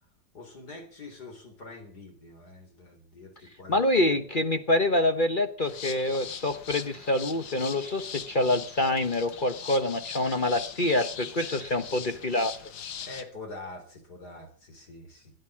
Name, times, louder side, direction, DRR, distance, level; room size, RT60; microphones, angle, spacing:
voice 1, 0.3-4.2 13.0-15.3, left 2 dB, 60° left, 4 dB, 4.1 m, -45 dB
voice 2, 3.7-12.5, left 1 dB, 35° left, 8 dB, 0.9 m, -26 dB
sound 1, 5.6-13.2, left 8 dB, 85° left, 1.9 m, -41 dB
16.0 x 10.5 x 7.4 m, 0.43 s
omnidirectional pair, 2.0 m